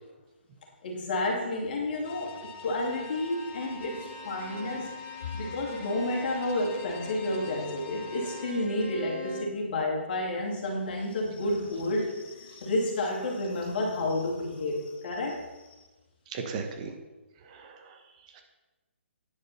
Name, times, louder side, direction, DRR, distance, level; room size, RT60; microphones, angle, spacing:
voice 1, 0.8-5.0 5.3-15.4, left 1 dB, 45° left, -1 dB, 2.9 m, -30 dB
sound 1, 2.0-8.5, left 5 dB, 25° left, 0.7 m, -45 dB
Bowed string instrument, 2.8-9.6, left 1 dB, 85° right, 3.4 m, -44 dB
voice 2, 16.3-16.9 17.4-18.0 18.3-18.4, right 5 dB, 35° right, 4 dB, 1.2 m, -37 dB
9.9 x 6.5 x 5.7 m, 1.1 s
figure-of-eight pair, 140°, 7 cm